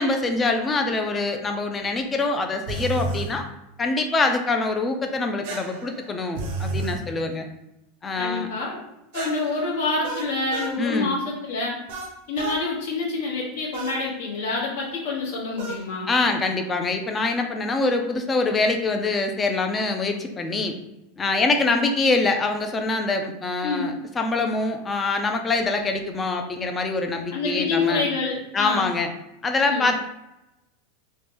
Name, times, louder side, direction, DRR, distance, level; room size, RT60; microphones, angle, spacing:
voice 1, 0.0-3.4 3.8-7.5 8.0-8.5 10.8-11.1 16.1-20.7 21.2-28.1 28.5-29.1 29.4-30.0, left 3 dB, 15° left, 5 dB, 0.3 m, -24 dB
sound 1, 2.7-3.3 5.4-7.0 9.1-10.8 11.9-12.6 13.7-14.0 15.6-15.9, right 3 dB, 60° right, 0.6 m, -32 dB
voice 2, 8.2-8.8 9.1-11.8 12.3-16.1 23.6-23.9 27.3-28.9 29.7-29.9, left 3 dB, 75° left, -3 dB, 1.1 m, -27 dB
3.2 x 2.1 x 2.8 m, 0.90 s
supercardioid pair, 160°, 0 cm